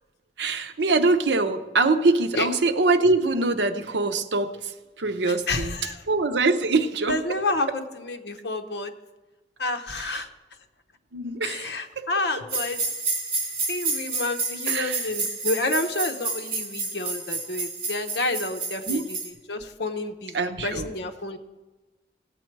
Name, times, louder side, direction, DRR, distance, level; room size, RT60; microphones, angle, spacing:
voice 1, 0.4-5.8 6.1-7.4 10.0-10.1 11.1-12.1 14.7-15.0 18.9-19.1 20.3-20.9, right 3 dB, 85° right, 9 dB, 0.8 m, -24 dB
voice 2, 5.3-6.0 7.0-8.9 9.6-10.3 11.4-12.8 13.7-21.4, left 2 dB, 70° left, 8 dB, 0.8 m, -29 dB
sound 1, 12.5-19.3, right 4 dB, 55° right, 4.2 m, -30 dB
17.0 x 7.7 x 4.6 m, 1.2 s
head